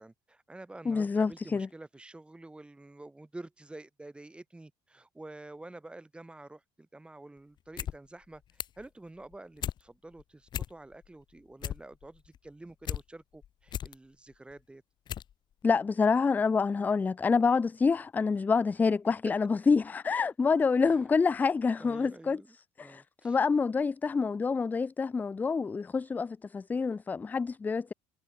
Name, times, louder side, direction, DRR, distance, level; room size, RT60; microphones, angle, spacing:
voice 1, 0.0-14.8 19.0-19.1 20.8-21.0 21.8-22.6 22.8-23.4, right 2 dB, 10° right, 3.3 m, -49 dB
voice 2, 0.9-1.7 15.6-22.4 22.8-27.9, left 5 dB, 15° left, 0.3 m, -27 dB
sound 1, 7.6-8.0 8.2-8.9 9.2-9.8 10.2-10.3 10.5-11.1 11.4-13.0 13.4-14.0 14.5-14.6 15.1-15.3 15.6-15.7, left 10 dB, 40° left, 0.8 m, -36 dB
cardioid pair, 140°, 12 cm